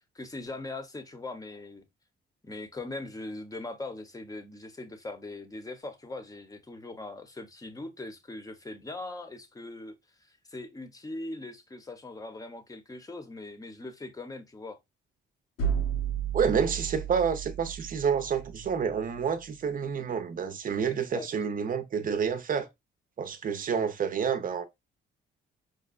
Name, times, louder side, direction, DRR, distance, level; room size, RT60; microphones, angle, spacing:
voice 1, 0.1-1.8 2.5-14.8 21.1-21.3, left 2 dB, 15° left, 0.8 m, -41 dB
sound 1, 15.6-19.4, right 8 dB, 90° left, 0.9 m, -33 dB
voice 2, 16.3-22.7 23.2-24.6, right 6 dB, 45° right, 0.7 m, -29 dB
5.1 x 2.2 x 2.4 m
cardioid pair, 90°, 20 cm